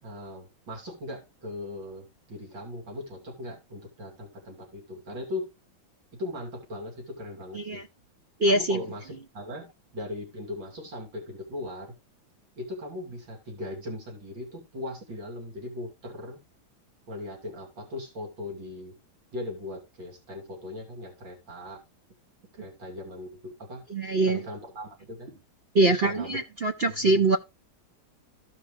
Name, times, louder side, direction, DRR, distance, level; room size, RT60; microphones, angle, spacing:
voice 1, 0.0-5.5 6.1-7.8 8.4-11.9 12.6-16.4 17.1-19.0 19.3-21.8 22.5-23.9 24.2-25.3 25.8-26.4 26.9-27.2, left 2 dB, 70° right, 3.4 m, -39 dB
voice 2, 8.4-8.8 23.9-24.4 25.7-27.4, right 2 dB, 50° right, 0.7 m, -23 dB
14.5 x 5.0 x 3.2 m
omnidirectional pair, 2.1 m